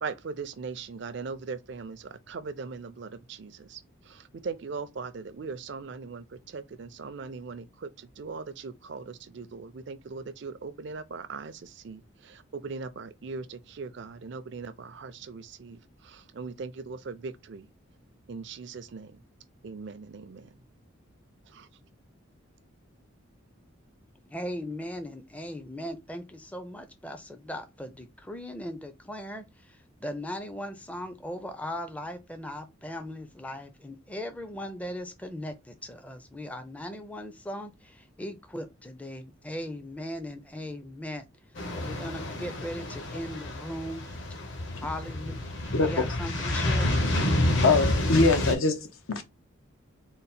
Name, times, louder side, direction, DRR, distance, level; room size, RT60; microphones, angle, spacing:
voice 1, 0.0-17.7 18.3-19.2 19.6-20.5 21.5-21.7, right 4 dB, 60° right, 0.4 m, -40 dB
voice 2, 24.3-41.2 41.7-44.0 44.8-45.4 45.8-46.9, left 1 dB, 5° left, 0.4 m, -38 dB
sound 1, 41.6-48.5, left 1 dB, 60° left, 1.1 m, -29 dB
voice 3, 45.7-46.0 47.6-49.2, left 3 dB, 80° left, 0.8 m, -23 dB
3.9 x 2.1 x 4.1 m
head